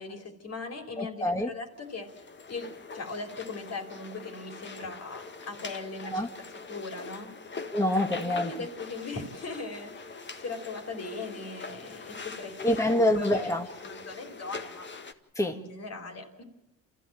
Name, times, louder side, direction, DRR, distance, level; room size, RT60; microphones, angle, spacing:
voice 1, 0.0-2.1 2.5-7.3 8.2-13.6 13.8-14.9 15.5-16.4, left 3 dB, 55° left, 4.2 m, -39 dB
voice 2, 1.0-1.5 6.1-6.3 7.7-8.5 12.6-13.7 15.3-15.6, left 1 dB, 10° left, 1.6 m, -26 dB
sound 1, 1.7-15.1, left 4 dB, 40° left, 1.8 m, -43 dB
28.5 x 14.5 x 8.9 m
cardioid pair, 90°, 30 cm